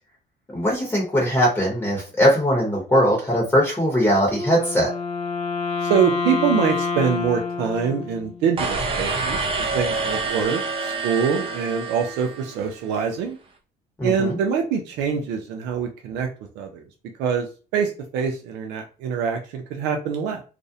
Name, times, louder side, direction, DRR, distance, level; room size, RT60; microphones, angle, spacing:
voice 1, 0.5-4.9 14.0-14.4, equal, 10° left, -3 dB, 0.8 m, -20 dB
Wind instrument woodwind instrument, 4.3-8.5, left 4 dB, 40° left, 0.5 m, -27 dB
voice 2, 5.8-13.4 14.0-16.3 16.6-16.8 17.2-20.4, right 7 dB, 90° right, 3 dB, 0.5 m, -24 dB
sound 1, 8.6-12.8, right 3 dB, 35° right, 0.5 m, -27 dB
2.5 x 2.0 x 2.6 m, 0.34 s
cardioid pair, 110°, 17 cm